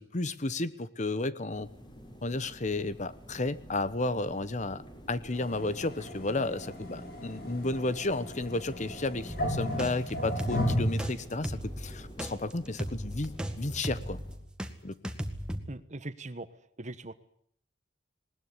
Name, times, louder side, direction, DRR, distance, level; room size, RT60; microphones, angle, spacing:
voice 1, 0.0-1.7 2.2-4.8 5.1-14.2 14.8-14.9, left 2 dB, 40° left, 16 dB, 1.1 m, -32 dB
sound 1, 1.5-14.4, equal, 25° left, 5.1 m, -49 dB
sound 2, 5.3-11.1, equal, 55° left, 6.5 m, -34 dB
sound 3, 9.3-14.7 15.0-15.6, equal, 5° right, 2.0 m, -37 dB
voice 2, 15.7-16.5 16.8-17.1, right 2 dB, 40° right, 13 dB, 1.3 m, -40 dB
20.0 x 19.5 x 9.8 m, 0.66 s
head